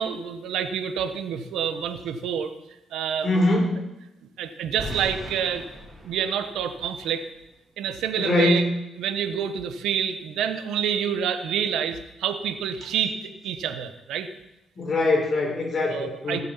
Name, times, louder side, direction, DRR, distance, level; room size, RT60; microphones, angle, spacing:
voice 1, 0.0-2.5 2.9-3.4 4.4-5.6 6.0-7.2 7.8-8.7 9.0-14.3 15.8-16.4, right 8 dB, 80° right, 8 dB, 1.2 m, -28 dB
voice 2, 3.2-3.8 8.2-8.6 14.8-16.4, left 2 dB, 40° left, 0 dB, 4.6 m, -22 dB
sound 1, 4.8-7.8, left 1 dB, 15° right, 3.5 m, -40 dB
16.5 x 7.6 x 5.8 m, 0.89 s
cardioid pair, 90°, 0 cm